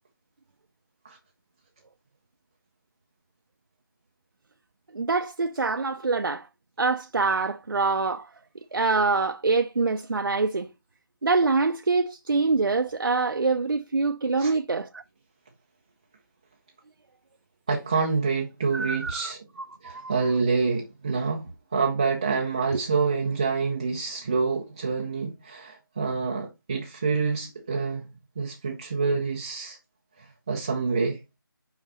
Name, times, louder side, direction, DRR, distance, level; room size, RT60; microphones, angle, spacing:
voice 1, 4.9-6.5 6.8-8.3 8.7-10.7 11.2-15.0 18.7-19.3 19.8-20.1, right 4 dB, 75° right, 0.7 m, -25 dB
voice 2, 17.7-19.5 19.8-28.1 28.4-29.8 30.2-31.2, right 4 dB, 15° right, 0.6 m, -27 dB
6.0 x 5.3 x 4.1 m
figure-of-eight pair, 170°, 12 cm